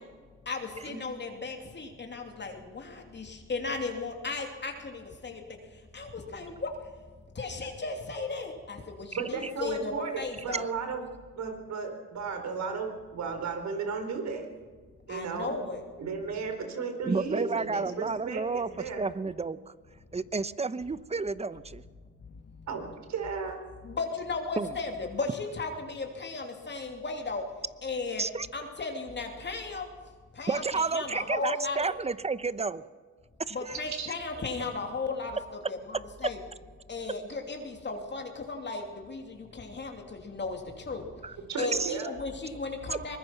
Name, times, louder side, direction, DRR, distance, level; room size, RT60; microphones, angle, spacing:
voice 1, 0.5-5.4 5.9-6.7 7.3-10.7 15.1-15.8 23.8-27.4 27.8-28.2 28.5-29.9 30.3-31.8 33.5-36.4 36.9-41.1 41.6-43.2, left 3 dB, 35° left, 3 dB, 2.9 m, -35 dB
voice 2, 9.1-11.0 11.3-14.5 15.1-15.5 16.0-19.0 22.7-23.6 34.0-34.1 41.5-42.1, right 5 dB, 65° right, 6 dB, 4.3 m, -34 dB
voice 3, 17.1-18.7 19.0-19.7 20.1-21.8 24.6-24.8 28.2-28.5 30.5-32.8 33.5-33.8 41.2-41.9 42.9-43.0, right 4 dB, 20° right, 15 dB, 0.8 m, -31 dB
24.0 x 20.5 x 5.9 m, 1.5 s
cardioid pair, 90°, 30 cm